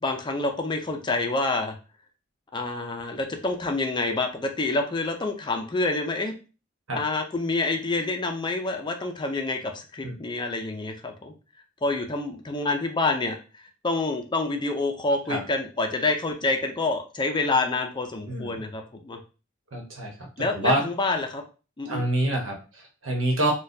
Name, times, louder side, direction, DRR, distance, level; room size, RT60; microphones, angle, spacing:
voice 1, 0.0-1.8 2.5-6.3 7.0-11.3 11.8-19.2 20.4-21.4 21.8-22.0, left 3 dB, 25° left, 4 dB, 0.4 m, -27 dB
voice 2, 18.3-18.6 19.7-20.9 21.8-23.5, right 1 dB, 80° right, 0 dB, 1.1 m, -27 dB
4.0 x 2.3 x 2.6 m, 0.33 s
head